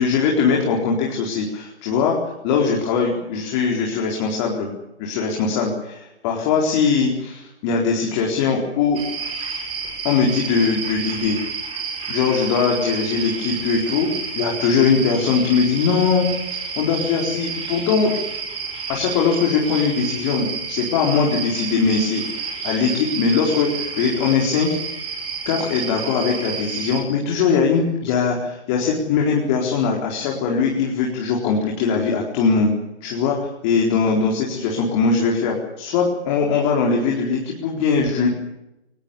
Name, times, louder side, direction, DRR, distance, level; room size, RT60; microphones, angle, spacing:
voice 1, 0.0-2.2 2.4-4.7 5.0-9.0 10.0-11.4 12.1-18.1 18.9-25.0 25.5-32.7 33.0-38.3, left 5 dB, 25° left, -1 dB, 4.3 m, -21 dB
sound 1, 8.9-27.0, right 5 dB, 15° right, 5.2 m, -30 dB
24.0 x 20.0 x 8.5 m, 0.89 s
figure-of-eight pair, 140°, 34 cm